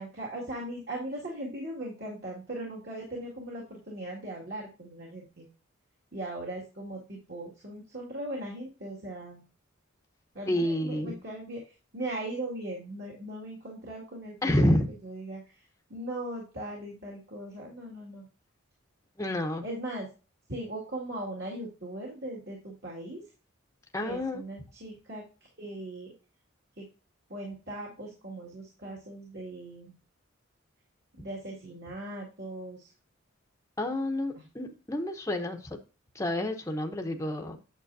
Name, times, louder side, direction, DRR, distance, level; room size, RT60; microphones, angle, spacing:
voice 1, 0.0-5.5 6.1-9.4 10.3-14.8 15.0-15.5 15.9-18.3 19.6-20.1 20.5-23.2 24.0-25.2 25.6-26.1 26.8-26.9 27.3-30.0 31.2-32.9 34.4-34.5, right 1 dB, 50° right, -3 dB, 2.2 m, -39 dB
voice 2, 10.5-11.2 14.4-14.9 19.2-19.6 23.9-24.4 33.8-35.8 36.1-37.6, left 1 dB, 15° left, 4 dB, 0.8 m, -29 dB
9.0 x 7.3 x 2.7 m, 0.32 s
head